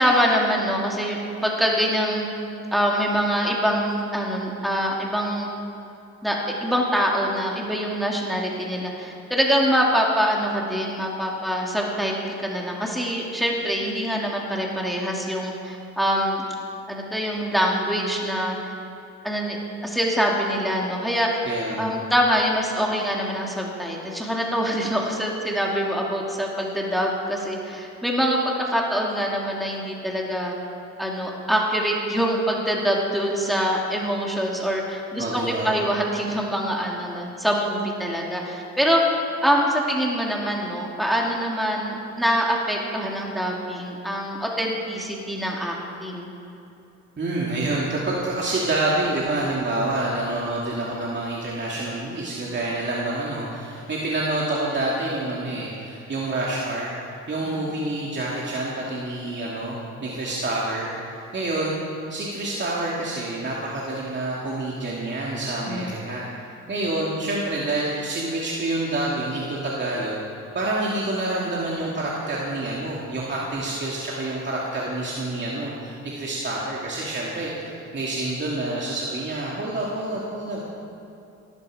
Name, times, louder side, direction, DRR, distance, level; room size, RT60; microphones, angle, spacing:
voice 1, 0.0-2.3 2.7-5.5 6.2-16.5 16.9-18.7 19.2-19.6 19.8-21.4 21.8-30.6 31.0-39.0 39.4-46.3 57.4-57.6 65.7-65.9, equal, ahead, -2 dB, 2.6 m, -24 dB
voice 2, 21.4-21.9 35.2-35.7 47.2-56.9 57.3-61.8 62.1-66.3 66.7-70.2 70.5-80.6, right 2 dB, 40° right, -5 dB, 2.5 m, -27 dB
17.5 x 13.0 x 5.0 m, 2.8 s
cardioid pair, 90°, 30 cm